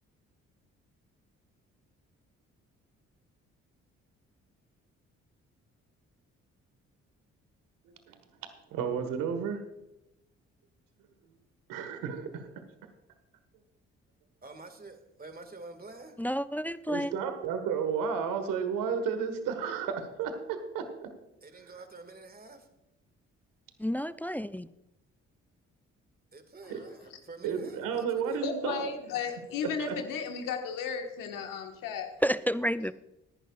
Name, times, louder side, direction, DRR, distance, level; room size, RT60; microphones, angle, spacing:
voice 1, 8.7-9.6 11.7-12.6 16.9-21.1 26.7-26.8 27.4-28.8 29.8-30.0, right 6 dB, 75° right, 1.6 m, -32 dB
voice 2, 14.4-16.1 21.5-22.6 26.3-27.0 27.3-27.7, right 3 dB, 25° right, 2.0 m, -47 dB
voice 3, 16.2-17.1 23.8-24.7 32.2-32.9, equal, 5° left, 0.4 m, -30 dB
voice 4, 28.3-32.1, left 6 dB, 75° left, 1.6 m, -34 dB
18.5 x 11.0 x 2.4 m
hypercardioid pair, 50°, 33 cm